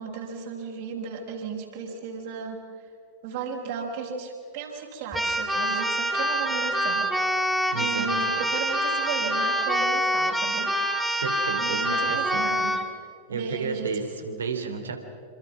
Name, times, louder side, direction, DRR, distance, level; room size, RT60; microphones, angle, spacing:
voice 1, 0.0-2.6 3.2-10.7 11.1-11.2 11.6-12.8 13.3-13.9, right 5 dB, 50° right, 0 dB, 6.0 m, -35 dB
Keyboard (musical), 5.1-12.9, equal, 5° right, 2.2 m, -26 dB
voice 2, 7.7-8.1 11.2-12.5 13.3-15.0, right 4 dB, 70° right, 6 dB, 3.1 m, -32 dB
27.5 x 26.0 x 6.1 m, 2.2 s
figure-of-eight pair, 90°, 0 cm